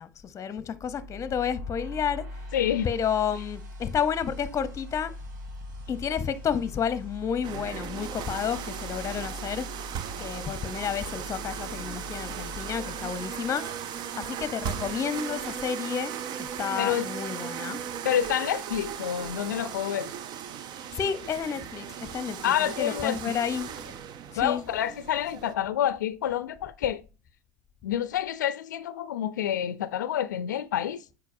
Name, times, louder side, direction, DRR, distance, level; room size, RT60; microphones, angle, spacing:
voice 1, 0.0-2.2 2.8-5.1 5.9-9.7 10.2-13.6 14.2-17.8 21.0-23.7 24.4-24.6, left 7 dB, 30° left, 0.8 m, -31 dB
sound 1, 0.7-13.8, left 1 dB, 90° right, 1.5 m, -42 dB
voice 2, 2.5-2.9 16.8-17.1 18.0-20.1 22.4-23.2 24.4-27.0 27.8-31.0, left 10 dB, 85° left, 0.4 m, -28 dB
sound 2, 7.4-25.5, right 8 dB, 50° right, 0.6 m, -37 dB
8.3 x 4.7 x 2.6 m
hypercardioid pair, 85°, 10 cm